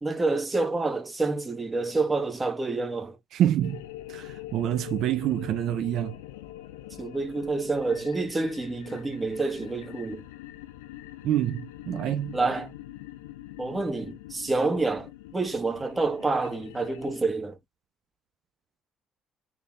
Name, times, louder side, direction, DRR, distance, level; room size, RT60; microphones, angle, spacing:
voice 1, 0.0-3.2 7.0-10.3 12.3-12.7 13.6-17.6, right 3 dB, 20° right, 1.5 m, -28 dB
voice 2, 3.3-3.8 4.1-6.2 11.2-12.4, right 11 dB, 65° right, 0.5 m, -27 dB
sound 1, 3.6-17.2, left 14 dB, 90° left, 0.5 m, -44 dB
4.0 x 3.4 x 2.5 m
hypercardioid pair, 60°, 0 cm